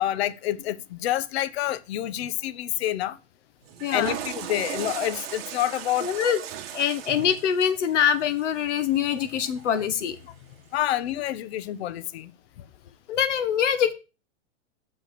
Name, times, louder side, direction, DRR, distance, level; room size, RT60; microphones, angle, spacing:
voice 1, 0.0-3.2 3.9-6.1 10.7-12.3, left 13 dB, 60° left, 0.6 m, -28 dB
Water / Toilet flush, 3.6-9.9, right 10 dB, 50° right, 1.3 m, -38 dB
voice 2, 3.8-4.2 6.0-6.4 6.7-10.2 13.1-13.9, left 8 dB, 75° left, 1.2 m, -24 dB
6.4 x 4.9 x 6.5 m
supercardioid pair, 160°, 37 cm